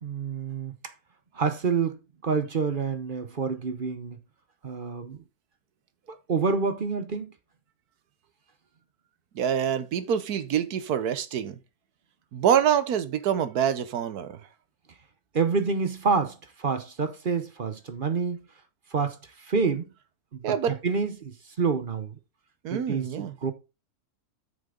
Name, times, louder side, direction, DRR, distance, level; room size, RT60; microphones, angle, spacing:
voice 1, 0.0-0.9 1.3-4.2 4.6-5.2 6.1-7.3 15.3-18.4 18.9-19.9 20.3-22.2 22.7-23.5, right 5 dB, 40° right, 0.9 m, -28 dB
voice 2, 9.3-11.6 12.3-14.4 20.4-20.8 22.6-23.3, right 9 dB, 80° right, 1.4 m, -26 dB
8.4 x 6.8 x 3.7 m
omnidirectional pair, 1.6 m